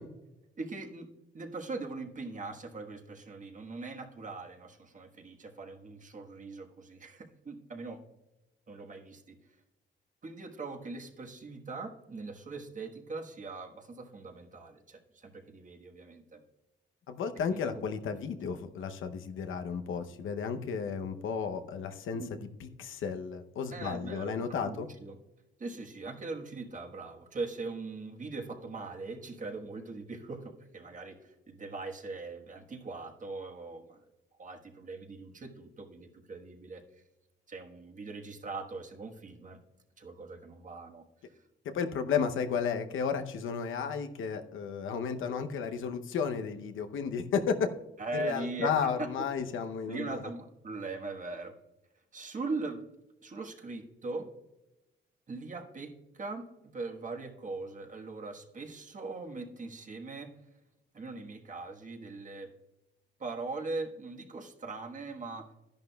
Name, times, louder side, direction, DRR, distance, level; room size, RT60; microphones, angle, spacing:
voice 1, 0.6-1.1 1.3-8.0 8.7-9.4 10.2-16.4 17.5-17.6 22.1-22.3 23.7-25.2 25.6-34.0 34.4-36.8 37.5-39.6 40.0-41.0 48.0-48.7 49.0-49.3 49.9-51.5 52.1-52.8 53.2-54.3 55.3-56.5 56.7-60.3 60.9-62.5 63.2-65.5, right 3 dB, 40° right, 3 dB, 1.4 m, -40 dB
voice 2, 17.1-24.9 41.6-47.7 48.1-50.3, left 6 dB, 85° left, 7 dB, 0.8 m, -33 dB
11.5 x 10.5 x 2.3 m, 0.97 s
cardioid pair, 95°, 20 cm